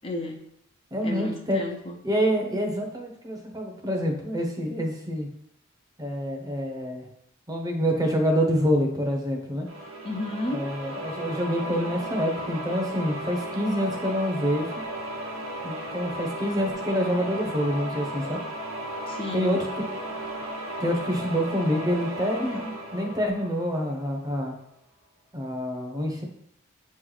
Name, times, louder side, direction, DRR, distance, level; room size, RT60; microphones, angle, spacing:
voice 1, 0.0-0.4 1.0-2.0 10.0-10.7 19.1-19.6, left 1 dB, 25° left, 2 dB, 0.6 m, -32 dB
voice 2, 0.9-1.6 2.0-5.3 6.0-7.1 7.5-9.7 10.5-14.7 15.6-18.4 19.3-20.0 20.8-24.6 25.3-26.2, equal, 20° right, 2 dB, 0.8 m, -27 dB
sound 1, 9.7-24.3, right 1 dB, 80° right, 1.1 m, -35 dB
8.5 x 3.1 x 3.9 m, 0.74 s
head